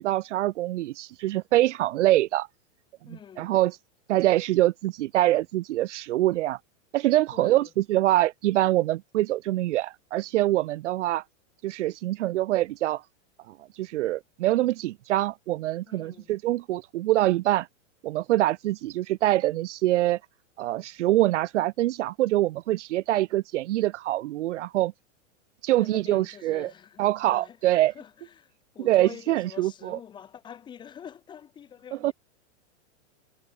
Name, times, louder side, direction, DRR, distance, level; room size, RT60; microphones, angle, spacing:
voice 1, 0.0-2.5 3.1-3.7 4.1-6.6 6.9-11.2 11.6-13.0 13.5-17.7 18.0-20.2 20.6-24.9 25.6-26.7 27.0-27.9 28.8-30.0 32.0-32.1, right 15 dB, 70° right, 0.5 m, -24 dB
voice 2, 3.0-3.5 7.3-7.7 15.9-16.3 25.8-27.0 27.3-32.1, left 8 dB, 10° left, 2.7 m, -46 dB
supercardioid pair, 175°, 37 cm